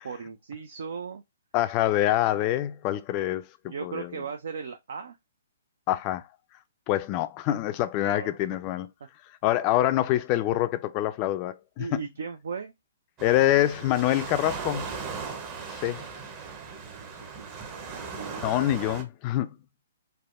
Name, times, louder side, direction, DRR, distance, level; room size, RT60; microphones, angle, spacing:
voice 1, 0.0-1.2 3.6-5.2 8.0-8.4 11.8-12.7 16.7-18.5, right 6 dB, 65° right, 0.4 m, -38 dB
voice 2, 1.5-4.1 5.9-6.2 6.9-8.9 9.4-12.0 13.2-14.9 15.7-16.0 18.4-19.5, left 14 dB, 35° left, 0.4 m, -25 dB
Waves surf, 13.2-19.0, right 5 dB, 30° right, 0.7 m, -38 dB
3.4 x 2.1 x 2.4 m
hypercardioid pair, 130°, 0 cm